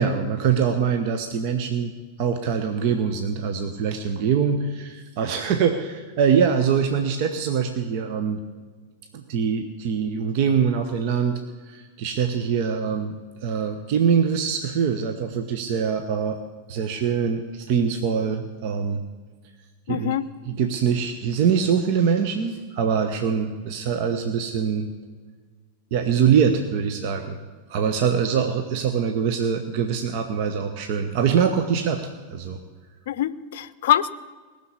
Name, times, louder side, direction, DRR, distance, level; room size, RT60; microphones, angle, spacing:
voice 1, 0.0-1.9 2.2-8.4 9.1-13.2 13.4-16.4 16.7-19.0 19.9-20.2 20.5-24.9 25.9-27.4 27.7-32.6, right 7 dB, 45° right, 7 dB, 0.9 m, -23 dB
voice 2, 19.9-20.3 33.1-34.1, left 11 dB, 55° left, 16 dB, 0.6 m, -23 dB
19.5 x 6.7 x 8.5 m, 1.5 s
figure-of-eight pair, 90°, 0 cm